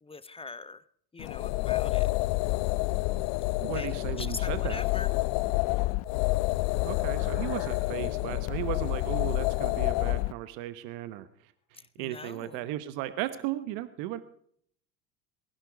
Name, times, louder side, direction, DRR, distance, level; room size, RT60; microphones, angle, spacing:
voice 1, 0.0-0.9 1.1-2.1 3.7-5.1 11.7-12.7, left 3 dB, 10° left, 16 dB, 0.8 m, -42 dB
sound 1, 1.2-10.3, left 21 dB, 55° left, 0.5 m, -28 dB
voice 2, 3.6-4.8 6.8-11.3 11.7-14.2, right 13 dB, 65° right, 14 dB, 1.2 m, -36 dB
sound 2, 5.3-9.6, left 8 dB, 80° left, 2.6 m, -52 dB
19.5 x 11.5 x 4.7 m, 0.63 s
hypercardioid pair, 80°, 45 cm